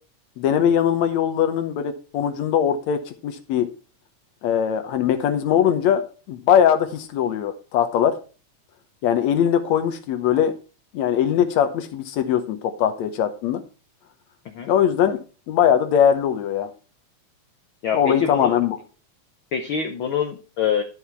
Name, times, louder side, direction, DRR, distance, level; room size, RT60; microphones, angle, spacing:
voice 1, 0.4-3.7 4.4-6.0 6.3-8.2 9.0-10.5 10.9-13.6 14.7-15.2 15.5-16.7 17.9-18.8, left 9 dB, 70° left, 8 dB, 2.1 m, -21 dB
voice 2, 17.8-18.6 19.5-20.8, left 7 dB, 85° left, 6 dB, 1.1 m, -25 dB
12.0 x 5.7 x 4.5 m, 0.35 s
omnidirectional pair, 3.5 m